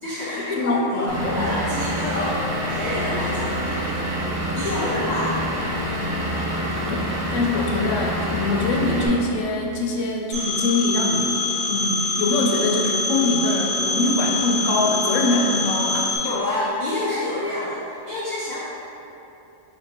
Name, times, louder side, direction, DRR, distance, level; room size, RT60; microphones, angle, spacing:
voice 1, 0.0-4.0 4.5-5.4 16.2-18.6, left 2 dB, 50° left, -8 dB, 0.5 m, -27 dB
voice 2, 0.6-1.5 6.9-16.1, left 2 dB, 75° left, 0 dB, 0.9 m, -23 dB
Vehicle / Engine, 1.1-9.1, equal, 25° right, 0.3 m, -26 dB
Telephone, 10.3-16.2, left 3 dB, 55° right, 1.1 m, -25 dB
4.6 x 3.5 x 2.8 m, 2.8 s
omnidirectional pair, 1.3 m